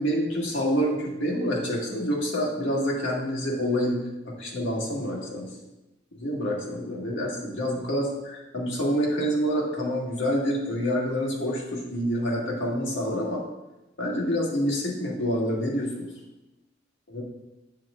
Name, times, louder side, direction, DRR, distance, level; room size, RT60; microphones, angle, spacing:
voice 1, 0.0-5.5 6.2-13.4 14.0-16.1 17.1-17.2, equal, 65° left, -3 dB, 1.9 m, -27 dB
8.7 x 7.6 x 2.5 m, 0.96 s
head